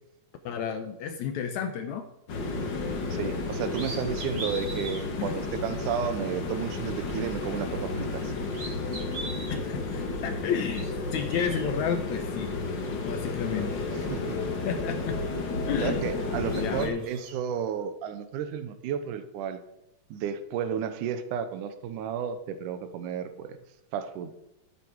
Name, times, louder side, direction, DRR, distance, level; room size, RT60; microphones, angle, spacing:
voice 1, 0.5-2.1 5.2-5.4 9.5-12.6 13.1-13.8 14.7-15.2 15.7-16.0 16.5-17.1, left 7 dB, 75° left, 7 dB, 1.8 m, -32 dB
sound 1, 2.3-16.9, left 3 dB, 50° left, 1.5 m, -32 dB
voice 2, 3.1-8.3 13.9-14.4 15.8-19.6 20.1-23.6 23.9-24.3, right 8 dB, 70° right, 10 dB, 2.3 m, -32 dB
sound 2, 3.2-3.3 3.7-5.0 5.7-5.8 7.5-8.2 8.5-9.6 10.5-11.7 12.8-12.9 13.3-15.0 15.3-16.2 16.4-17.3, right 2 dB, 35° right, 3.1 m, -42 dB
13.5 x 8.4 x 4.7 m, 0.88 s
omnidirectional pair, 4.0 m